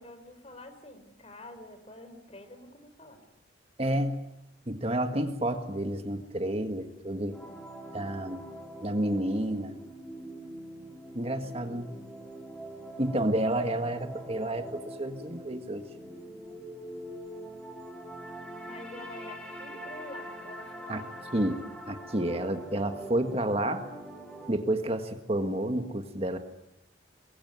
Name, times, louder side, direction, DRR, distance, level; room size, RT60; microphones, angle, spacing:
voice 1, 0.0-3.2 18.6-21.1, left 1 dB, 30° left, 9 dB, 4.1 m, -47 dB
voice 2, 3.8-4.3 4.7-7.4 7.9-8.4 8.8-9.8 11.2-12.0 13.0-15.8 20.9-21.0 21.3-23.9 24.5-26.4, right 1 dB, 30° right, 7 dB, 1.7 m, -30 dB
sound 1, 7.3-24.5, right 1 dB, 5° left, 4.4 m, -44 dB
25.0 x 21.5 x 9.5 m, 0.84 s
head